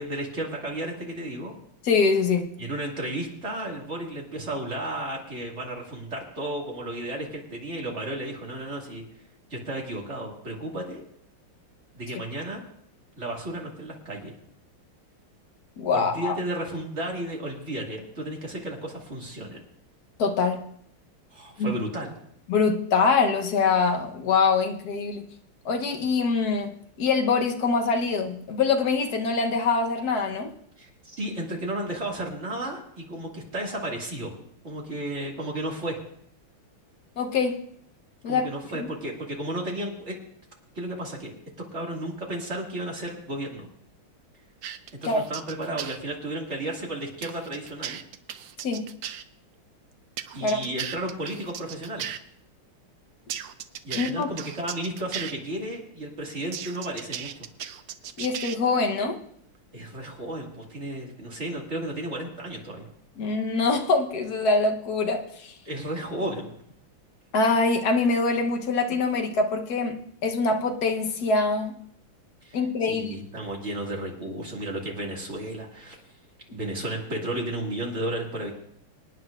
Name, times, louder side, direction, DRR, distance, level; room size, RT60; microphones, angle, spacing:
voice 1, 0.0-1.5 2.6-9.0 9.5-11.0 11.9-12.6 13.2-14.3 15.9-19.6 21.3-22.1 30.8-34.3 34.6-36.0 38.3-40.2 40.7-41.3 41.7-43.7 45.0-48.0 50.3-52.1 53.8-57.5 59.7-62.9 65.6-66.5 72.4-76.0 76.5-78.5, right 1 dB, 35° right, -1 dB, 2.4 m, -33 dB
voice 2, 1.8-2.5 15.8-16.4 20.2-20.6 21.6-21.7 22.5-25.2 25.6-26.7 27.0-30.5 37.2-37.5 38.2-38.5 38.8-38.9 45.0-45.2 48.6-48.9 50.4-50.6 53.9-54.3 58.2-59.2 63.2-65.5 67.3-70.0 70.2-71.7 72.5-73.1, left 4 dB, 55° left, 3 dB, 1.4 m, -24 dB
sound 1, 44.6-46.0 47.2-49.2 50.2-52.2 53.3-55.3 56.5-58.6, right 10 dB, 80° right, 0.8 m, -36 dB
26.0 x 9.5 x 2.5 m, 0.68 s
omnidirectional pair, 2.3 m